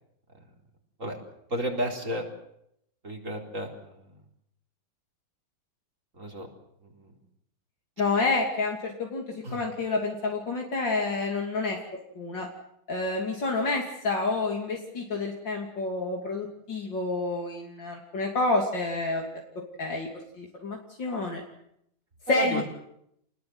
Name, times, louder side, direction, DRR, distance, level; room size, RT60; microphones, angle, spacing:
voice 1, 1.5-2.3 3.0-4.1 6.1-6.5 6.8-7.1 9.4-9.6 22.3-22.6, equal, 40° right, 1 dB, 4.6 m, -33 dB
voice 2, 8.0-11.8 12.2-12.5 12.9-19.3 19.8-20.1 20.4-21.4 22.3-22.6, left 3 dB, 70° left, 0 dB, 3.6 m, -29 dB
29.0 x 20.5 x 8.0 m, 0.75 s
omnidirectional pair, 2.1 m